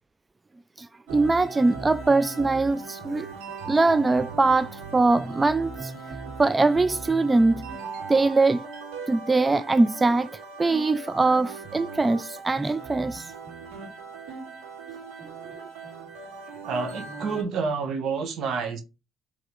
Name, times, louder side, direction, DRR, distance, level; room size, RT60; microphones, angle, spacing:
voice 1, 0.8-3.3 3.7-5.9 6.4-7.7 8.1-8.7 9.1-10.3 10.6-13.3, right 3 dB, 25° right, 0.3 m, -22 dB
sound 1, 1.1-17.4, right 4 dB, 85° right, 2.5 m, -38 dB
voice 2, 16.6-18.8, right 5 dB, 70° right, 1.5 m, -29 dB
4.9 x 3.8 x 5.0 m
supercardioid pair, 65°, 0 cm